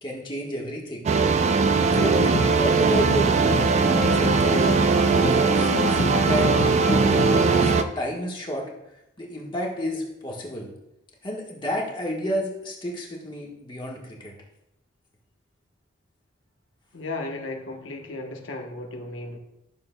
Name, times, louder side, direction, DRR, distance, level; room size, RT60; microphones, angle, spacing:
voice 1, 0.0-1.1 1.9-4.9 5.3-6.5 6.9-8.7 9.2-10.7 11.2-14.3, equal, 25° left, -2 dB, 1.4 m, -30 dB
sound 1, 1.1-7.8, right 4 dB, 35° right, 0.3 m, -20 dB
sound 2, 1.9-7.8, left 1 dB, 45° left, 0.7 m, -31 dB
voice 2, 16.9-19.4, left 2 dB, 65° left, 3 dB, 1.0 m, -35 dB
12.0 x 6.6 x 2.2 m, 0.87 s
head